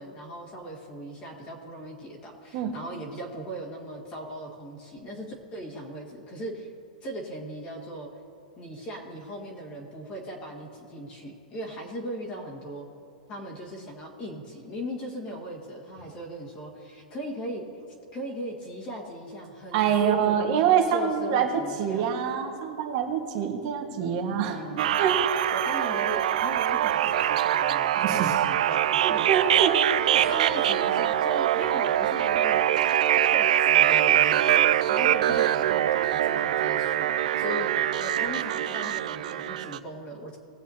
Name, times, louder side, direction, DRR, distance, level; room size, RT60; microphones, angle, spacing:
voice 1, 0.0-6.7 7.0-8.1 8.6-12.9 13.3-17.6 18.1-22.1 24.4-25.0 25.5-29.3 29.8-33.0 33.3-34.6 34.9-40.4, equal, 25° left, -2 dB, 1.8 m, -38 dB
voice 2, 19.7-21.5 21.8-24.6 24.9-25.2 28.0-28.3 29.0-29.7 30.1-30.4, right 8 dB, 45° right, 3 dB, 1.6 m, -25 dB
sound 1, 24.8-39.8, right 11 dB, 70° right, 0.5 m, -23 dB
20.0 x 7.5 x 2.9 m, 2.6 s
supercardioid pair, 155°, 4 cm